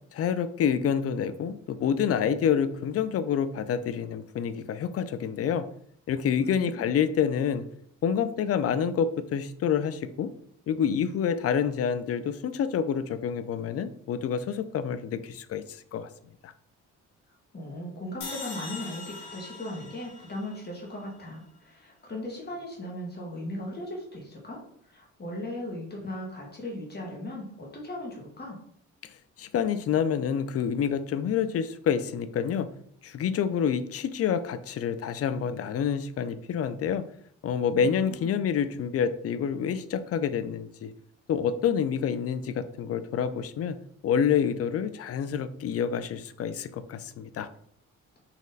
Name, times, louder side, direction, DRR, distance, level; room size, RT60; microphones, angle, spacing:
voice 1, 0.1-5.6 6.1-7.6 8.0-10.3 10.7-16.1 16.4-16.5 29.0-29.1 29.4-32.7 33.0-37.0 37.4-40.9 41.3-43.8 44.0-47.5, left 7 dB, 50° left, 12 dB, 0.5 m, -28 dB
voice 2, 6.5-6.9 17.5-28.6 37.8-38.4, left 1 dB, 35° left, -2 dB, 1.5 m, -38 dB
sound 1, 18.2-21.4, left 3 dB, 90° left, 1.4 m, -42 dB
4.2 x 3.0 x 4.0 m, 0.65 s
cardioid pair, 90°, 30 cm